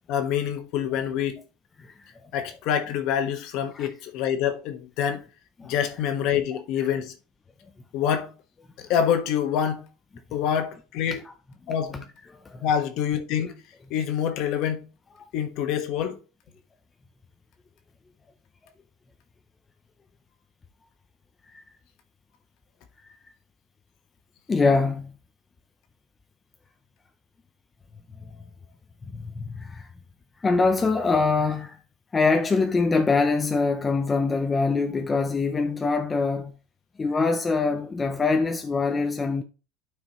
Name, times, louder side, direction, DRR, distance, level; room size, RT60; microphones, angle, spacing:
voice 1, 0.1-1.4 2.3-5.2 5.6-7.1 7.9-8.3 8.8-9.8 10.3-11.2 11.7-12.1 12.6-13.5 13.9-14.9 15.3-16.2, left 9 dB, 50° left, 1.3 m, -26 dB
voice 2, 1.8-2.3 3.7-3.9 5.6-5.7 10.3-10.4 11.3-11.4 12.3-12.6 15.2-15.3 21.5-21.6 23.0-23.2 24.5-25.1 28.2-28.4 29.1-29.9 30.4-31.8 32.1-36.5 37.0-39.4, left 4 dB, 15° left, 0.5 m, -24 dB
12.0 x 4.6 x 3.0 m
supercardioid pair, 150°, 0 cm